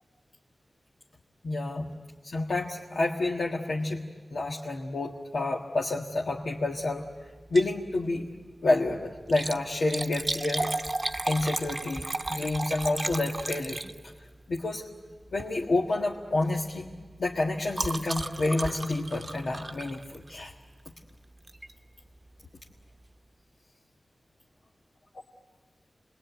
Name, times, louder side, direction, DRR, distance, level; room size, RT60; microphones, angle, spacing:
voice 1, 1.4-1.9 2.2-4.0 4.3-7.1 7.5-8.2 8.6-10.7 11.2-14.1 14.5-14.9 15.3-16.9 17.2-20.5, left 2 dB, 80° left, -2 dB, 1.6 m, -29 dB
Liquid, 7.4-7.8 8.2-8.3 9.2-14.3 15.3-15.6 15.9-16.2 16.4-20.5 21.5-21.7 22.3-22.4 22.5-22.6, right 2 dB, 35° right, 0.9 m, -34 dB
29.0 x 21.0 x 9.2 m, 1.4 s
wide cardioid pair, 95°, 0 cm